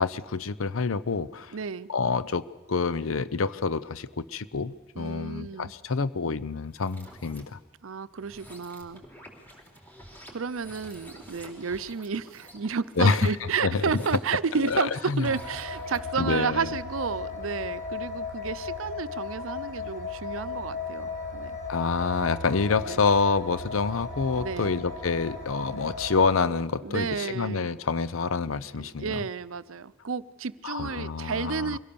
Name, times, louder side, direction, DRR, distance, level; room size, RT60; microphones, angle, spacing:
voice 1, 0.0-1.5 1.9-7.6 13.0-13.3 13.6-13.8 14.7-15.2 16.2-16.7 21.7-29.1 30.6-31.8, left 4 dB, 80° left, 15 dB, 0.7 m, -27 dB
voice 2, 1.5-1.9 4.9-5.7 7.8-9.0 10.3-21.6 22.9-23.0 24.3-24.8 26.8-27.7 28.8-31.8, right 5 dB, 80° right, 16 dB, 0.6 m, -31 dB
sound 1, 6.7-7.4 8.1-16.2, equal, 10° left, 3.9 m, -50 dB
sound 2, 15.2-26.3, left 4 dB, 45° left, 4.2 m, -36 dB
24.0 x 17.0 x 6.9 m, 1.3 s
head